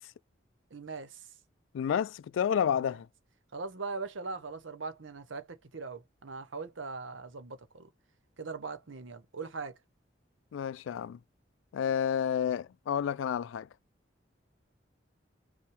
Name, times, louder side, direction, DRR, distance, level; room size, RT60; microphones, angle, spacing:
voice 1, 0.7-1.3 2.8-2.9 3.5-7.9 8.4-9.7, right 4 dB, 85° right, 0.9 m, -40 dB
voice 2, 1.7-3.1 10.5-11.2 11.7-13.7, left 8 dB, 90° left, 0.3 m, -30 dB
5.6 x 2.2 x 3.3 m
head